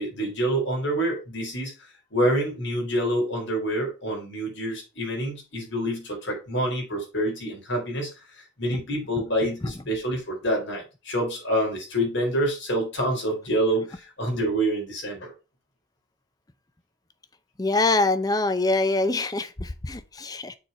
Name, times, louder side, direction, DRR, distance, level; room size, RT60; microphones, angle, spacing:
voice 1, 0.0-1.7 2.1-15.3, right 1 dB, 75° left, 4.0 m, -27 dB
voice 2, 17.6-20.5, left 2 dB, 20° left, 0.6 m, -24 dB
6.6 x 4.6 x 5.4 m
head